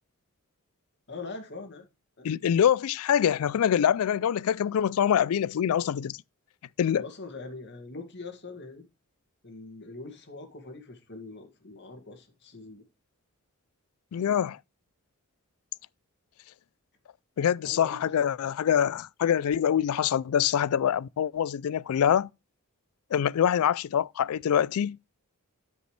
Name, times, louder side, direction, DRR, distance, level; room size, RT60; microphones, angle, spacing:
voice 1, 1.1-1.8 2.2-2.3 6.9-8.8 9.4-12.8 17.6-18.1, left 3 dB, 50° left, 2.1 m, -42 dB
voice 2, 2.2-6.2 6.8-7.0 14.1-14.6 17.4-22.3 23.1-25.0, left 9 dB, 70° left, 0.3 m, -25 dB
12.5 x 5.3 x 3.2 m
head